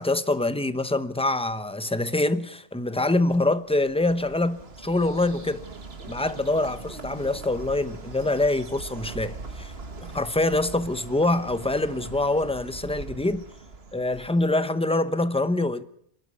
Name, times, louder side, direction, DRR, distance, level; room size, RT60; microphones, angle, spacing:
voice 1, 0.0-5.6 6.1-9.7 10.1-13.4 13.9-15.8, left 2 dB, 5° left, 0.7 m, -25 dB
Bird, 3.3-14.7, right 4 dB, 60° right, 1.8 m, -41 dB
26.5 x 11.5 x 9.6 m
omnidirectional pair, 1.2 m